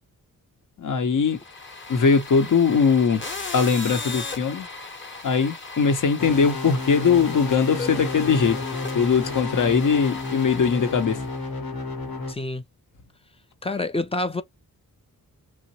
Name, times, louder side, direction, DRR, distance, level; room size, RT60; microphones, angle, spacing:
voice 1, 0.8-1.4 1.9-3.2 3.5-4.7 5.2-8.6 8.9-11.2, left 5 dB, 60° left, 0.8 m, -21 dB
sound 1, 1.3-11.5, left 3 dB, 35° left, 0.9 m, -37 dB
sound 2, 6.2-12.3, left 3 dB, 85° left, 1.0 m, -31 dB
voice 2, 12.3-12.6 13.6-14.4, left 2 dB, 15° left, 0.4 m, -27 dB
3.1 x 2.1 x 2.7 m
cardioid pair, 80°, 35 cm